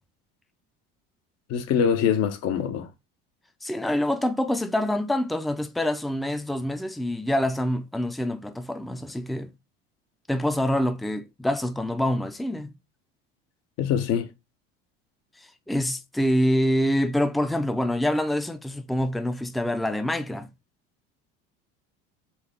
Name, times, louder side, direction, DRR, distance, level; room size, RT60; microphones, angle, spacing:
voice 1, 1.5-2.9 13.8-14.3, left 8 dB, 60° left, 1.1 m, -24 dB
voice 2, 3.6-9.5 10.3-12.7 15.7-20.5, left 1 dB, ahead, 0.5 m, -26 dB
4.7 x 3.0 x 3.5 m
supercardioid pair, 90°, 29 cm